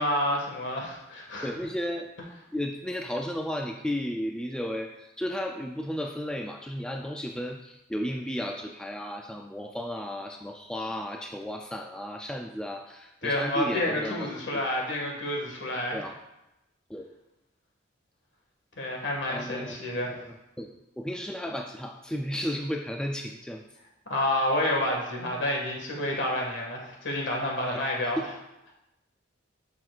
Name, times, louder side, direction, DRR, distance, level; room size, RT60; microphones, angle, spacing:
voice 1, 0.0-1.5 13.2-16.0 18.8-20.1 24.0-28.2, left 1 dB, 65° left, -1 dB, 1.8 m, -29 dB
voice 2, 1.4-2.1 2.5-14.6 15.9-16.2 16.9-17.1 19.3-20.7 21.0-23.6 27.7-27.8 28.2-28.3, equal, 5° left, 2 dB, 0.3 m, -34 dB
11.0 x 6.0 x 2.4 m, 0.91 s
head